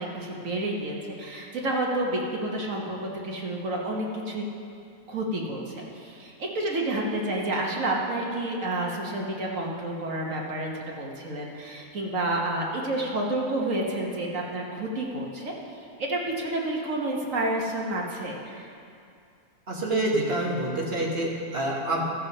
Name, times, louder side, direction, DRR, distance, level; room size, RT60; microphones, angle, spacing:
voice 1, 0.0-4.4 5.1-15.5 16.0-18.7, right 1 dB, 60° right, -1 dB, 1.6 m, -30 dB
voice 2, 19.7-22.0, right 1 dB, 40° right, -3 dB, 1.8 m, -27 dB
13.5 x 7.3 x 5.4 m, 2.5 s
omnidirectional pair, 1.6 m